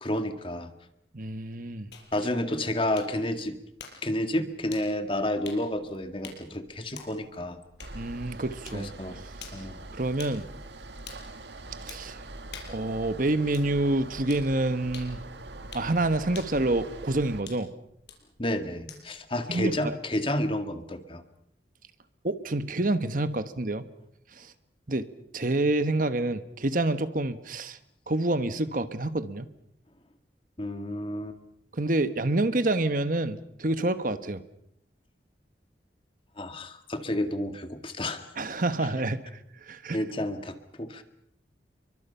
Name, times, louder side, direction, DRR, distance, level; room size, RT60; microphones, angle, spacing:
voice 1, 0.0-0.7 2.1-3.6 4.0-7.6 8.7-9.2 9.5-9.8 18.4-21.2 30.6-31.4 36.4-38.3 39.9-41.0, left 1 dB, 30° left, 8 dB, 1.9 m, -30 dB
voice 2, 1.1-1.9 7.9-8.9 9.9-10.5 11.8-12.2 12.7-15.2 15.7-17.7 19.5-20.0 22.2-23.8 24.4-24.5 24.9-25.1 25.3-27.8 28.1-29.5 31.7-34.4 38.4-39.2 39.6-40.0, right 2 dB, 50° right, 11 dB, 1.3 m, -27 dB
sound 1, 1.9-19.3, left 6 dB, 75° left, 5.3 m, -50 dB
sound 2, 7.8-17.4, right 2 dB, 85° right, 1.8 m, -43 dB
30.0 x 23.5 x 5.7 m, 0.74 s
head